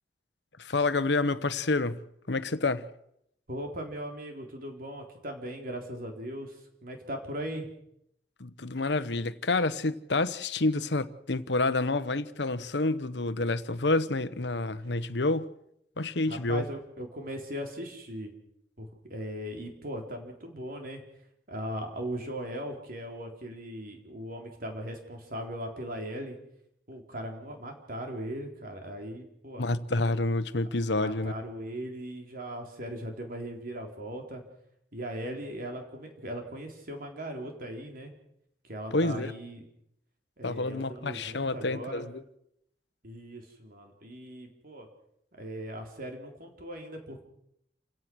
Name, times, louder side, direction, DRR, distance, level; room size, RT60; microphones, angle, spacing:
voice 1, 0.6-2.9 8.4-15.5 16.0-16.7 29.6-31.3 38.9-39.3 40.4-42.2, left 2 dB, 85° left, 1.1 m, -28 dB
voice 2, 3.5-7.7 16.3-18.3 18.8-21.0 21.5-26.4 26.9-29.7 30.9-34.4 34.9-38.1 38.6-39.6 40.4-42.1 43.0-44.9 45.4-47.2, equal, 55° right, 3.9 m, -39 dB
28.5 x 17.0 x 6.3 m
head